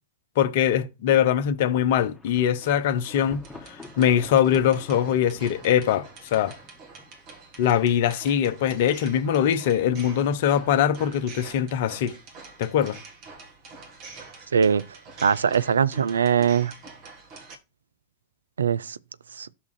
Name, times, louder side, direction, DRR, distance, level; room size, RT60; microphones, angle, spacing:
voice 1, 0.4-6.6 7.6-12.1 12.6-13.0, left 9 dB, 50° left, 0.8 m, -22 dB
Thunder, 1.7-7.5, left 2 dB, 5° left, 1.6 m, -48 dB
sound 1, 2.3-17.6, right 4 dB, 40° right, 1.8 m, -46 dB
voice 2, 14.5-14.8 15.2-16.7 18.6-19.0 19.3-19.5, right 7 dB, 70° right, 0.4 m, -21 dB
6.2 x 3.5 x 6.0 m
figure-of-eight pair, 90°, 0 cm